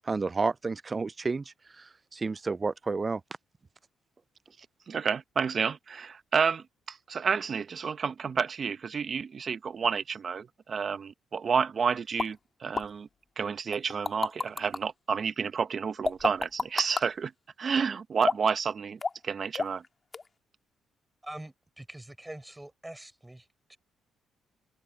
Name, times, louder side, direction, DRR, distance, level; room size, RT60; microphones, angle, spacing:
voice 1, 0.0-1.4 1.8-3.2, right 4 dB, 30° right, 0.4 m, -30 dB
voice 2, 4.9-13.1 13.4-17.3 17.6-19.8, right 6 dB, 45° right, 1.1 m, -30 dB
sound 1, 12.2-12.3 12.8-12.9 13.7-14.8 16.0-17.1 18.2-18.6 19.0-19.3 19.5-19.9 20.1-20.2, left 4 dB, 30° left, 2.1 m, -29 dB
voice 3, 21.2-23.8, right 1 dB, 10° right, 5.7 m, -44 dB
cardioid pair, 90°, 0 cm